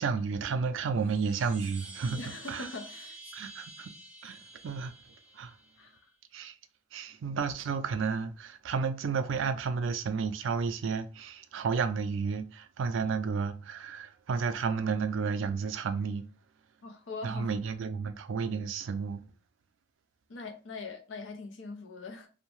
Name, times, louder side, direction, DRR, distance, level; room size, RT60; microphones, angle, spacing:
voice 1, 0.0-2.2 2.5-2.7 3.3-3.9 4.2-4.9 5.3-5.6 6.3-6.5 6.9-16.2 17.2-19.2, right 5 dB, 75° right, 0.4 m, -32 dB
sound 1, 0.9-6.0, right 2 dB, 5° right, 0.4 m, -49 dB
voice 2, 2.1-3.2 5.8-5.9 16.8-17.5 20.3-22.3, left 3 dB, 75° left, 0.6 m, -42 dB
2.6 x 2.1 x 3.0 m
head